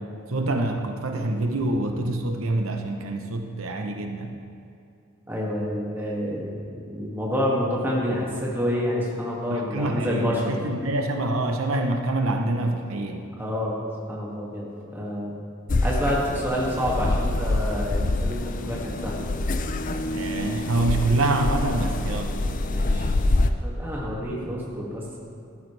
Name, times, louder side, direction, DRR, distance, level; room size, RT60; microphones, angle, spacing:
voice 1, 0.3-4.4 9.5-13.3 20.1-22.3, right 2 dB, 80° right, 4 dB, 0.8 m, -26 dB
voice 2, 5.3-10.6 13.4-13.8 14.1-14.7 14.9-15.3 15.8-19.3 22.7-23.1 23.6-25.0, equal, 10° right, -5 dB, 2.1 m, -28 dB
sound 1, 15.7-23.5, left 2 dB, 40° left, 0.5 m, -26 dB
13.5 x 12.5 x 3.3 m, 2.6 s
head